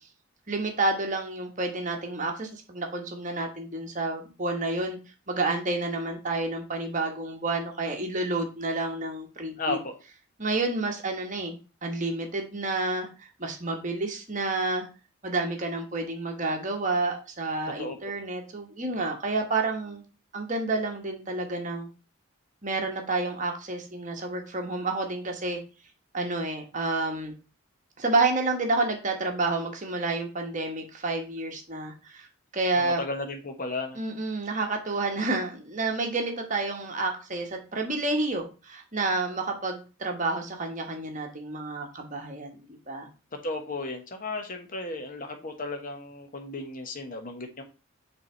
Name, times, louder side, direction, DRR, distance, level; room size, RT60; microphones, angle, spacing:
voice 1, 0.5-5.0 5.3-9.8 10.4-14.9 15.2-20.0 20.3-21.9 22.6-25.6 26.1-27.3 28.0-32.3 32.5-33.0 33.9-43.1, right 2 dB, 35° right, 3 dB, 1.3 m, -29 dB
voice 2, 9.6-9.9 17.8-18.0 32.8-34.0 43.4-47.6, left 2 dB, 40° left, 4 dB, 1.1 m, -34 dB
6.6 x 3.6 x 4.4 m, 0.32 s
head